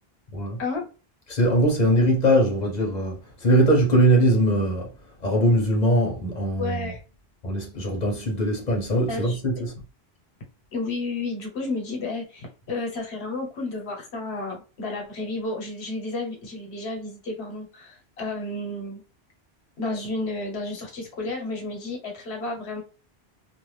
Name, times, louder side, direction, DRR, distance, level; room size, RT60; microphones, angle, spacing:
voice 1, 1.3-4.9 5.2-6.9 7.4-9.8, right 1 dB, 45° left, 0.9 m, -21 dB
voice 2, 6.6-7.0 9.1-9.7 10.7-19.0 19.8-22.8, left 2 dB, 85° left, 1.2 m, -32 dB
2.4 x 2.4 x 3.1 m
omnidirectional pair, 1.1 m